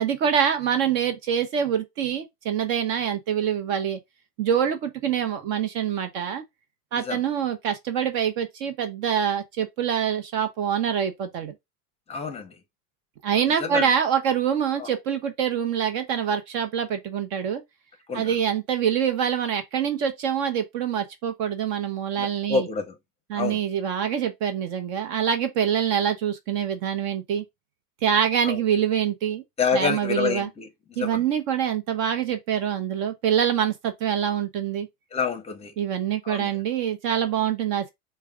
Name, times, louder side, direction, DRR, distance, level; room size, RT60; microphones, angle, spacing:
voice 1, 0.0-4.0 4.4-6.4 6.9-11.5 13.2-17.6 18.1-22.7 23.3-27.4 28.0-29.4 29.7-30.5 31.0-34.9 35.8-37.9, right 8 dB, 55° right, 0.9 m, -25 dB
voice 2, 12.1-12.5 13.3-13.9 14.8-14.9 18.1-18.3 22.1-23.0 23.3-23.6 28.4-28.6 29.6-31.2 35.1-35.7 36.2-36.5, left 5 dB, 15° left, 0.7 m, -28 dB
4.7 x 2.3 x 3.4 m
supercardioid pair, 125°, 43 cm